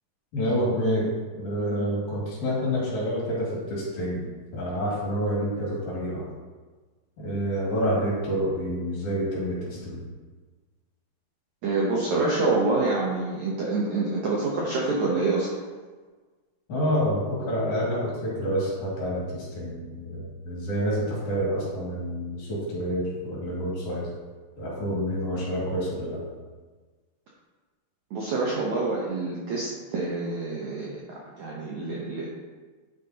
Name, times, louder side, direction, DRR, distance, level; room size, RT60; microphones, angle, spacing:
voice 1, 0.3-4.3 4.5-6.2 7.2-10.0 16.7-24.1 24.6-26.2, equal, 50° left, -6 dB, 3.4 m, -28 dB
voice 2, 11.6-15.5 25.3-25.4 28.1-32.3, right 3 dB, 90° right, -4 dB, 1.6 m, -27 dB
9.5 x 7.5 x 2.9 m, 1.4 s
omnidirectional pair, 4.9 m